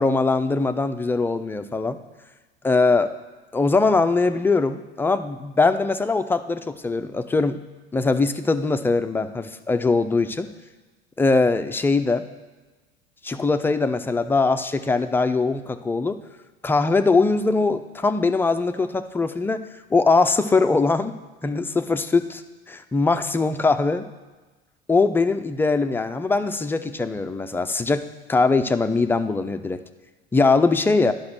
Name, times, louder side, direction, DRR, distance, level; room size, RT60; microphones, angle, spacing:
voice 1, 0.0-2.0 2.6-3.1 3.5-7.6 7.9-10.5 11.2-12.2 13.2-16.2 16.6-21.1 21.4-22.4 22.7-24.1 24.9-29.8 30.3-31.1, left 3 dB, 5° left, 9 dB, 0.3 m, -21 dB
10.5 x 5.4 x 5.9 m, 1.3 s
figure-of-eight pair, 70°, 31 cm